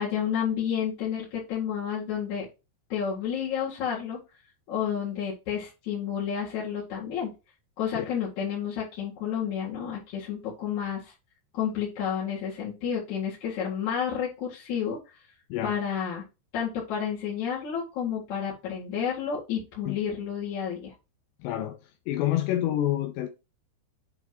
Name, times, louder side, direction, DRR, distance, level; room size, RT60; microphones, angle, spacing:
voice 1, 0.0-2.5 2.9-4.2 4.7-7.3 7.8-11.1 11.5-15.0 15.6-16.2 16.5-20.9, left 8 dB, 50° left, 2.8 m, -30 dB
voice 2, 21.4-21.8 22.1-23.3, left 13 dB, 85° left, 2.7 m, -27 dB
8.3 x 3.4 x 4.7 m
omnidirectional pair, 5.3 m